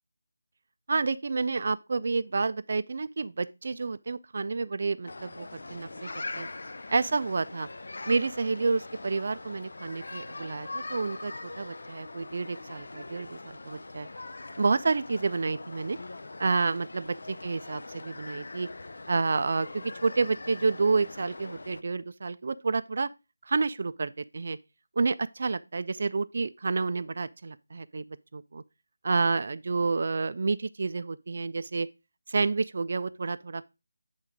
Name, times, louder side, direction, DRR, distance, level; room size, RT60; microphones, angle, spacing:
voice 1, 0.9-6.5 6.9-7.7 8.1-14.1 14.6-16.0 16.4-18.7 19.1-23.1 23.5-24.6 25.0-28.0 28.3-28.6 29.0-31.9 32.3-33.6, right 4 dB, 50° right, 0.4 m, -29 dB
sound 1, 5.1-21.8, left 2 dB, 65° left, 0.5 m, -42 dB
7.8 x 3.6 x 4.9 m
figure-of-eight pair, 165°, 0 cm